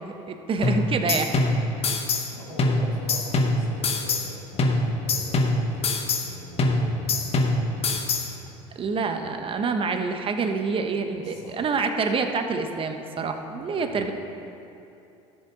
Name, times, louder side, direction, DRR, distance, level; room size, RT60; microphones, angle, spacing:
voice 1, 0.1-1.3 8.7-14.1, right 4 dB, 35° right, 6 dB, 1.0 m, -27 dB
sound 1, 0.6-2.3 2.6-4.3 4.6-6.3 6.6-8.3, left 2 dB, 40° left, 1.2 m, -24 dB
voice 2, 2.0-8.6 11.2-11.6 13.7-14.1, left 2 dB, 90° left, -4 dB, 2.5 m, -43 dB
13.0 x 6.9 x 5.0 m, 2.8 s
hypercardioid pair, 85°, 16 cm